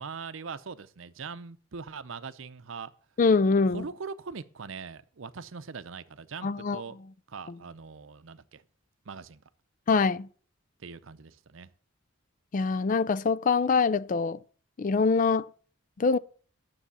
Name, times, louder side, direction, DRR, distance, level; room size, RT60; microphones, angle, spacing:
voice 1, 0.0-2.9 3.7-7.0 7.3-8.6 9.1-9.4 10.8-11.7, right 5 dB, 70° right, 0.6 m, -41 dB
voice 2, 3.2-3.9 6.4-6.8 9.9-10.3 12.5-14.4 14.8-15.5 16.0-16.2, left 4 dB, 40° left, 0.4 m, -24 dB
9.9 x 6.9 x 7.0 m
head